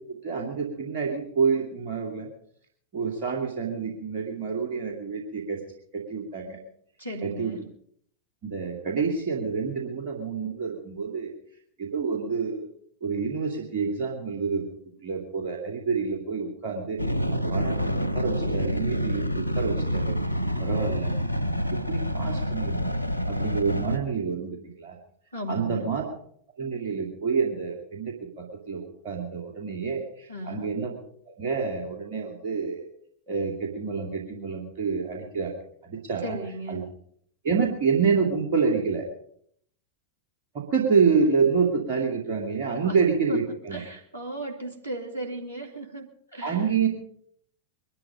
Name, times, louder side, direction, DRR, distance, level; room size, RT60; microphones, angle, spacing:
voice 1, 0.1-2.3 2.9-5.6 5.9-6.6 7.2-7.7 8.4-11.3 11.8-12.7 13.0-17.0 17.3-20.2 20.6-21.1 21.4-22.9 23.3-25.0 25.5-26.0 26.6-31.0 31.2-32.9 33.3-35.5 35.8-36.4 36.7-36.8 37.4-39.0 40.5-43.8 46.4-46.9, right 5 dB, 45° right, 1 dB, 2.8 m, -28 dB
voice 2, 7.0-7.6 25.3-25.9 30.3-30.7 36.2-36.9 42.8-43.0 43.3-43.4 43.7-46.6, right 1 dB, 90° left, 2 dB, 2.7 m, -36 dB
sound 1, 17.0-24.0, equal, 85° right, 1.1 m, -27 dB
22.0 x 12.5 x 5.1 m, 0.65 s
figure-of-eight pair, 90°, 0 cm